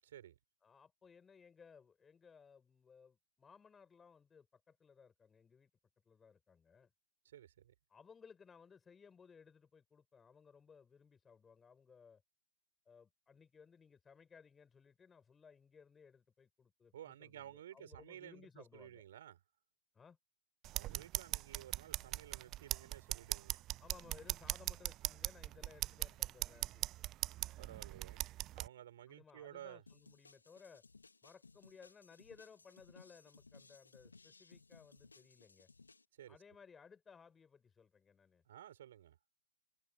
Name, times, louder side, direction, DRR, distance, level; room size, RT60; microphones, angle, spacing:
voice 1, 0.6-5.7 6.0-6.9 7.9-12.2 12.9-19.0 19.9-20.2 23.8-26.9 29.1-30.8 31.2-35.7 36.3-38.4, left 6 dB, 15° left, 7.9 m, -61 dB
voice 2, 7.3-7.7 16.9-19.4 20.7-23.6 27.6-28.2 28.5-29.8 36.2-36.4 38.5-39.2, right 11 dB, 55° right, 7.1 m, -54 dB
sound 1, 20.6-28.7, right 15 dB, 30° right, 0.4 m, -41 dB
sound 2, 29.9-36.0, left 4 dB, 85° left, 3.3 m, -62 dB
figure-of-eight pair, 115°, 0 cm